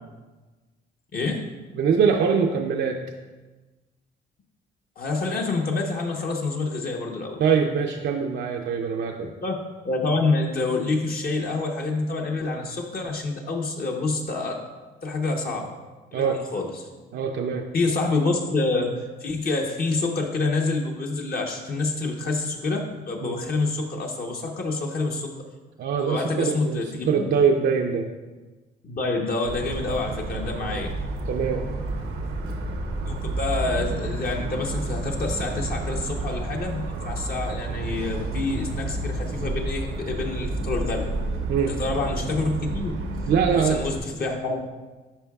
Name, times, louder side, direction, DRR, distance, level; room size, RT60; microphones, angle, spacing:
voice 1, 1.1-1.5 5.0-7.4 9.4-9.5 9.8-14.6 15.0-15.7 16.1-16.8 17.7-25.3 26.0-27.3 28.8-30.9 33.0-41.1 41.7-42.9 43.5-44.7, left 3 dB, 50° left, 1 dB, 0.9 m, -27 dB
voice 2, 1.8-3.0 7.4-9.3 16.1-16.4 17.1-17.7 23.2-23.4 25.8-28.1 30.7-30.8 31.3-31.7 41.5-41.8 43.3-43.8, right 6 dB, 60° right, 2 dB, 0.5 m, -23 dB
Motor vehicle (road) / Siren, 29.5-44.0, right 2 dB, 85° right, 0.8 m, -30 dB
11.0 x 4.5 x 2.3 m, 1.2 s
cardioid pair, 90°, 20 cm